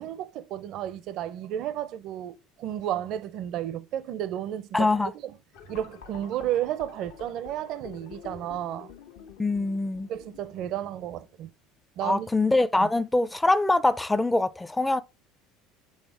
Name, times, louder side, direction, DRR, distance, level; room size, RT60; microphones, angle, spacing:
voice 1, 0.0-4.9 5.2-5.3 5.7-8.9 10.1-11.5 12.0-12.3 12.8-12.9, right 11 dB, 60° right, 0.6 m, -32 dB
voice 2, 4.7-5.1 9.4-10.1 12.0-15.0, left 2 dB, 10° left, 0.5 m, -23 dB
sound 1, 5.5-11.4, left 8 dB, 80° left, 1.4 m, -48 dB
6.5 x 3.3 x 4.9 m
supercardioid pair, 95°, 0 cm